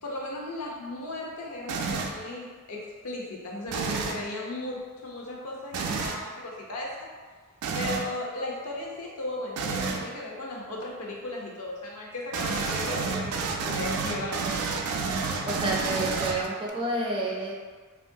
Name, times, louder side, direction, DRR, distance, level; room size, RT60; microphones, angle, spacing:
voice 1, 0.0-7.1 7.7-14.5, left 2 dB, 80° left, -2 dB, 0.6 m, -36 dB
sound 1, 1.7-2.2 3.7-4.2 5.7-6.2 7.6-8.1 9.6-10.1 12.3-16.7, right 4 dB, 90° right, 0.3 m, -30 dB
voice 2, 15.5-17.5, right 1 dB, 25° right, -3 dB, 0.4 m, -29 dB
2.9 x 2.4 x 2.6 m, 1.5 s
head